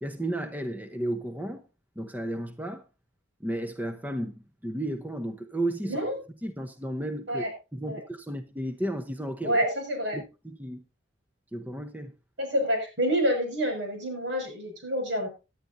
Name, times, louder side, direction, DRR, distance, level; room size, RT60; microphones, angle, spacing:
voice 1, 0.0-1.6 2.0-2.8 3.4-6.1 6.4-7.5 7.7-9.6 10.1-10.8 11.5-12.1, right 1 dB, 10° right, 0.8 m, -33 dB
voice 2, 5.8-6.2 7.3-7.5 7.8-8.0 9.4-10.2 12.4-15.3, equal, 75° right, 6.1 m, -28 dB
17.5 x 10.5 x 2.7 m
head